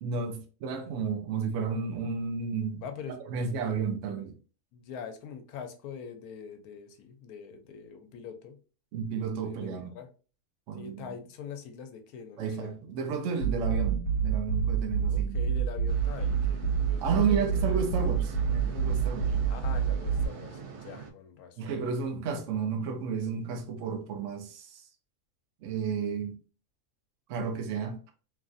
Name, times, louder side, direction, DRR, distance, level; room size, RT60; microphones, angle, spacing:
voice 1, 0.0-2.8 3.3-4.3 8.9-9.9 10.7-11.2 12.4-15.4 17.0-19.4 21.6-24.9 25.6-26.4 27.3-28.0, right 5 dB, 65° right, 0.8 m, -32 dB
voice 2, 2.8-3.2 3.6-3.7 4.7-8.6 9.4-10.1 10.7-12.7 15.1-17.5 17.9-18.0 19.5-21.8 27.4-27.5, left 7 dB, 80° left, 1.1 m, -44 dB
sound 1, 13.4-20.3, right 7 dB, 50° left, 1.2 m, -28 dB
sound 2, 15.9-21.1, right 6 dB, 85° right, 1.1 m, -43 dB
3.0 x 2.3 x 2.5 m
omnidirectional pair, 1.6 m